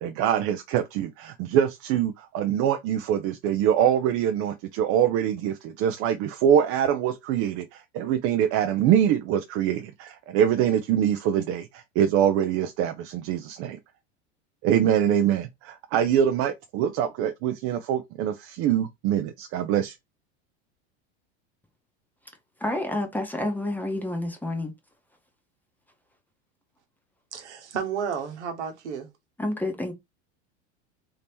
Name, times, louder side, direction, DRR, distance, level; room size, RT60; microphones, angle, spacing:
voice 1, 0.0-13.8 14.6-20.0, right 9 dB, 45° right, 0.5 m, -24 dB
voice 2, 22.6-24.7 29.4-29.9, left 1 dB, 5° left, 0.8 m, -29 dB
voice 3, 27.3-29.1, right 7 dB, 90° right, 1.1 m, -32 dB
2.9 x 2.8 x 3.4 m
hypercardioid pair, 105°, 34 cm